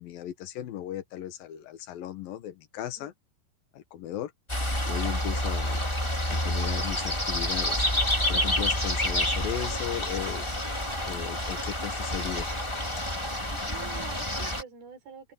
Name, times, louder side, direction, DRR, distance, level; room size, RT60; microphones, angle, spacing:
voice 1, 0.0-3.1 3.7-4.3 4.9-5.8 6.3-7.9 8.3-10.5 11.1-12.5, left 11 dB, 65° left, 2.5 m, -36 dB
voice 2, 2.8-3.1 13.5-15.3, right 6 dB, 55° right, 7.9 m, -47 dB
sound 1, 4.5-14.6, left 1 dB, 10° left, 2.0 m, -28 dB
open air
omnidirectional pair, 5.4 m